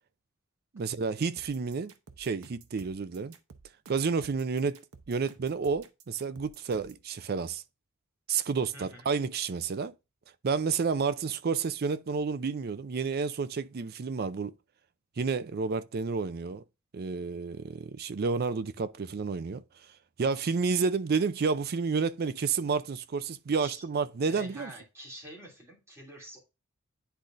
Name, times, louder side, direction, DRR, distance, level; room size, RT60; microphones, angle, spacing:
voice 1, 0.7-3.3 3.9-4.8 5.1-7.6 8.3-9.9 10.4-14.5 15.2-16.6 16.9-19.6 20.2-24.7, right 5 dB, 45° right, 0.4 m, -30 dB
sound 1, 1.4-7.0, right 4 dB, 80° right, 0.8 m, -53 dB
voice 2, 8.7-9.1 23.6-23.8 24.3-26.4, equal, 10° right, 2.5 m, -47 dB
10.0 x 3.9 x 2.5 m
head